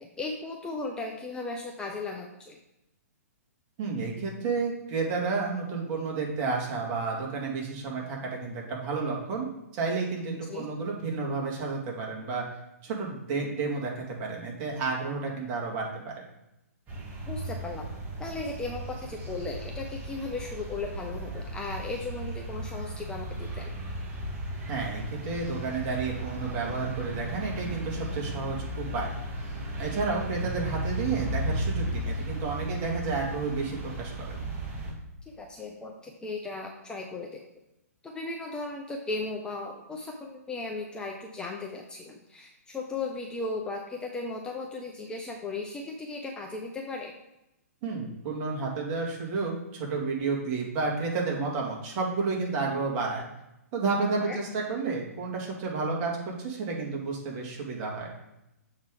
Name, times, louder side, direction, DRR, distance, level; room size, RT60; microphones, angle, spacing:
voice 1, 0.0-2.6 10.5-10.7 17.3-17.9 18.2-23.7 35.3-37.4 38.0-47.1 54.3-54.4, left 3 dB, 10° left, 0 dB, 0.6 m, -36 dB
voice 2, 3.8-12.5 12.8-16.1 24.7-29.1 29.8-34.4 47.8-53.2 53.7-58.1, right 4 dB, 35° right, -1 dB, 2.1 m, -31 dB
sound 1, 16.9-34.9, right 1 dB, 20° right, 1.8 m, -35 dB
7.1 x 3.8 x 4.9 m, 0.89 s
hypercardioid pair, 135°, 9 cm